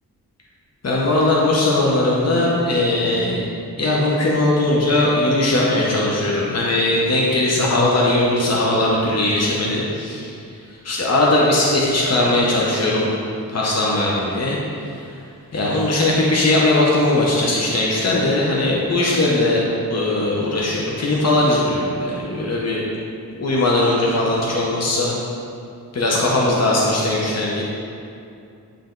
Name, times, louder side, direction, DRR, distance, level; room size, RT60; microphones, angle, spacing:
voice 1, 0.8-3.4 3.8-10.3 10.8-13.1 13.5-14.9 15.5-19.6 19.9-22.8 23.4-25.1 25.9-27.6, left 2 dB, 45° left, -4 dB, 0.9 m, -19 dB
9.1 x 3.4 x 3.8 m, 2.5 s
wide cardioid pair, 115°, 38 cm